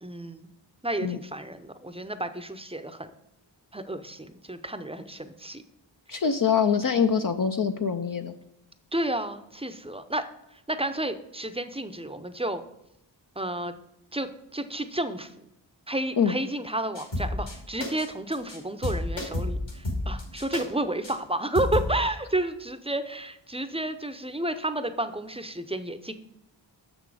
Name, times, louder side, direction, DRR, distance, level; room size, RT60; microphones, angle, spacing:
voice 1, 0.0-0.5 0.8-3.1 3.7-5.6 8.9-10.3 10.7-12.6 13.4-13.7 14.1-15.3 15.9-26.1, right 1 dB, 15° right, 9 dB, 0.6 m, -31 dB
voice 2, 6.1-8.3 16.2-16.3, left 6 dB, 45° left, 6 dB, 0.5 m, -24 dB
sound 1, 16.9-17.5 17.8-18.1 18.3-18.6 18.8-20.6 21.0-21.1 21.5-21.9, left 1 dB, 70° left, 2.5 m, -30 dB
6.6 x 6.1 x 4.8 m, 0.83 s
cardioid pair, 45°, 46 cm